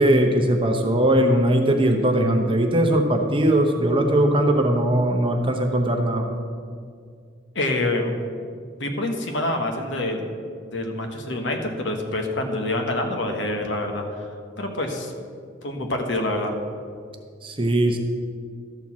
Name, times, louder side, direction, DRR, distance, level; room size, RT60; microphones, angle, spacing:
voice 1, 0.0-6.3 17.4-18.0, right 1 dB, 25° right, 3 dB, 0.8 m, -20 dB
voice 2, 7.5-8.1 8.8-10.2 10.7-14.3 14.6-15.1 15.6-16.5, left 1 dB, 65° left, 3 dB, 1.2 m, -26 dB
12.5 x 4.6 x 7.2 m, 2.2 s
head